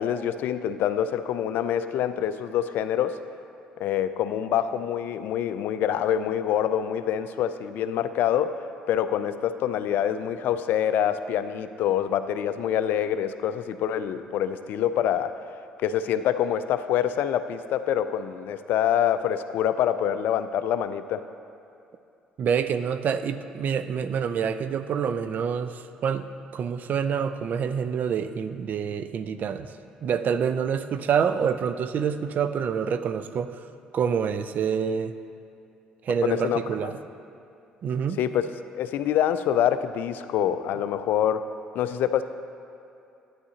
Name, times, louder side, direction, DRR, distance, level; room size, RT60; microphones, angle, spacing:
voice 1, 0.0-3.2 3.8-8.6 8.9-15.3 15.8-21.2 36.2-36.9 38.2-38.4 38.7-41.4 41.7-42.2, left 10 dB, 65° left, 11 dB, 0.4 m, -26 dB
voice 2, 22.4-26.3 26.5-29.7 30.0-33.6 33.9-35.1 36.0-37.0 37.8-38.2, right 7 dB, 55° right, 11 dB, 0.4 m, -27 dB
11.5 x 9.5 x 2.8 m, 2.6 s
hypercardioid pair, 55°, 4 cm